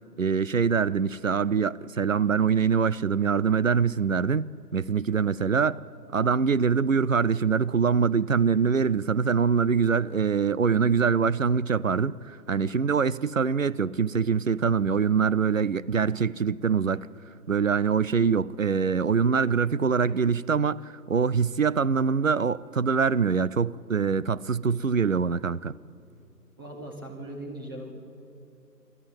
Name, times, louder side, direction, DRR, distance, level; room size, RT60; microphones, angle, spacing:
voice 1, 0.2-5.8 6.1-17.1 17.5-25.8, right 6 dB, 55° right, 0.5 m, -24 dB
voice 2, 26.6-27.9, right 1 dB, 15° right, 1.7 m, -39 dB
26.0 x 13.5 x 8.9 m
figure-of-eight pair, 175°, 50 cm